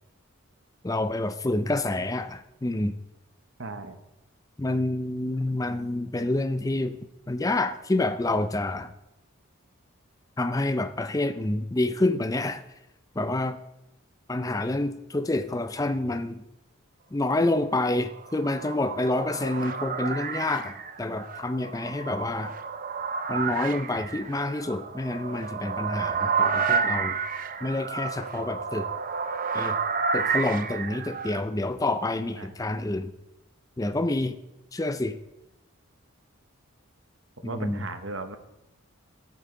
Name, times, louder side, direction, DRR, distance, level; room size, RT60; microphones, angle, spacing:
voice 1, 0.8-2.9 4.6-7.0 7.3-8.9 10.4-12.6 13.2-13.6 14.3-16.4 17.1-22.5 23.3-27.2 27.6-28.9 29.5-29.8 30.1-33.1 33.8-34.3 34.7-35.2 37.4-37.9, left 2 dB, 15° left, 11 dB, 0.4 m, -28 dB
voice 2, 3.6-4.0 32.4-32.5 37.4-38.4, right 3 dB, 60° right, 8 dB, 1.0 m, -36 dB
sound 1, 18.0-31.4, right 5 dB, 40° right, 0.6 m, -30 dB
13.5 x 8.5 x 3.8 m, 0.91 s
head